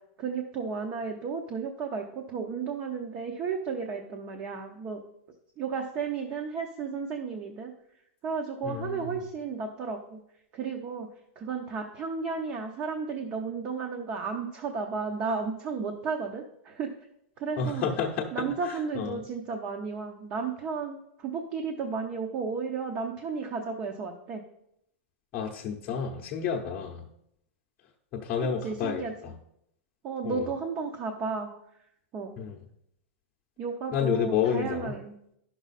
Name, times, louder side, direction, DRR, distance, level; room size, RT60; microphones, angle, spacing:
voice 1, 0.2-5.0 5.6-7.7 8.2-10.2 10.5-11.1 11.4-16.9 17.4-17.9 18.3-24.4 28.6-29.1 30.0-31.5 32.1-32.3 33.6-35.1, right 5 dB, 30° right, 3 dB, 0.8 m, -33 dB
voice 2, 8.6-9.2 17.6-19.2 25.3-27.1 28.1-29.3 30.2-30.5 32.4-32.6 33.9-34.9, left 7 dB, 30° left, -2 dB, 0.8 m, -30 dB
10.0 x 6.1 x 4.1 m, 0.75 s
supercardioid pair, 155°, 7 cm